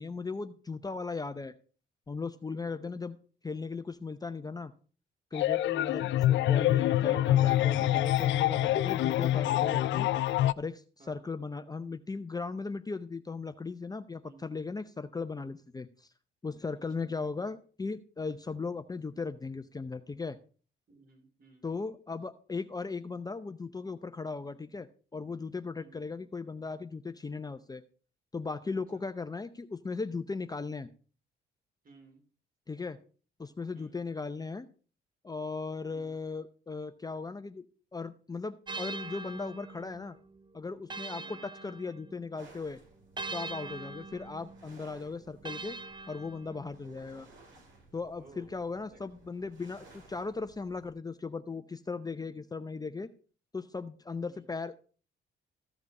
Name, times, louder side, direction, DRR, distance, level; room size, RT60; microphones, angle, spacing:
voice 1, 0.0-1.5 2.1-3.2 3.4-4.7 5.3-10.1 10.6-16.1 16.4-20.4 21.6-27.8 28.3-30.9 32.7-33.0 33.4-34.7 35.2-37.6 37.9-40.2 40.5-42.8 43.3-45.8 46.1-47.3 47.9-53.1 53.5-54.8, left 4 dB, 20° left, 9 dB, 0.6 m, -37 dB
voice 2, 2.6-3.0 5.8-6.1 11.0-11.3 14.2-14.5 16.7-17.1 20.9-21.7 25.8-26.0 28.9-29.0 31.8-32.2 33.7-34.0 41.2-41.4 43.6-43.9 46.8-47.1 48.2-48.5 48.9-49.2 54.3-54.5, right 3 dB, 45° right, 3 dB, 3.6 m, -57 dB
sound 1, 5.3-10.5, left 14 dB, 70° left, 0.4 m, -26 dB
sound 2, 38.7-42.4 43.2-46.8, right 3 dB, 20° right, 0.7 m, -43 dB
sound 3, 42.3-50.9, right 3 dB, 85° right, 6.0 m, -58 dB
15.0 x 5.1 x 5.3 m, 0.39 s
cardioid pair, 90°, 20 cm